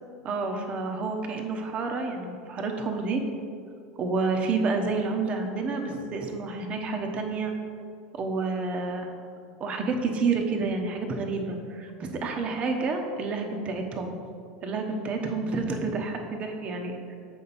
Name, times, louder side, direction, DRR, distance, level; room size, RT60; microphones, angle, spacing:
voice 1, 0.2-3.2 4.0-7.5 8.1-9.1 9.6-14.2 14.6-17.2, right 4 dB, 40° right, 3 dB, 1.0 m, -29 dB
7.6 x 5.4 x 4.2 m, 2.3 s
hypercardioid pair, 80°, 3 cm